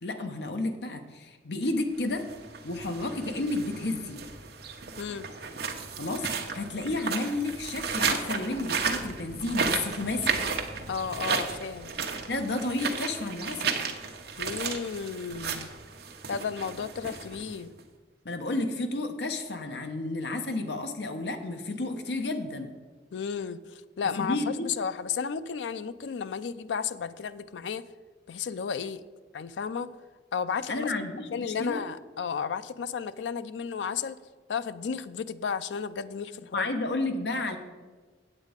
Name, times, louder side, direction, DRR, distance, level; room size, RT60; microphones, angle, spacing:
voice 1, 0.0-2.2 2.6-4.2 6.0-10.4 12.3-13.8 18.2-22.7 24.2-24.7 30.7-31.8 36.5-37.6, left 2 dB, 65° left, 6 dB, 1.0 m, -31 dB
sound 1, 2.1-17.8, right 5 dB, 65° right, 1.0 m, -33 dB
voice 2, 5.0-5.3 10.9-11.9 14.4-15.7 16.3-17.7 23.1-27.9 28.3-29.0 29.3-29.9 30.3-30.9 31.3-34.2 34.5-36.7, left 6 dB, 90° left, 13 dB, 0.4 m, -33 dB
8.4 x 8.1 x 5.1 m, 1.4 s
head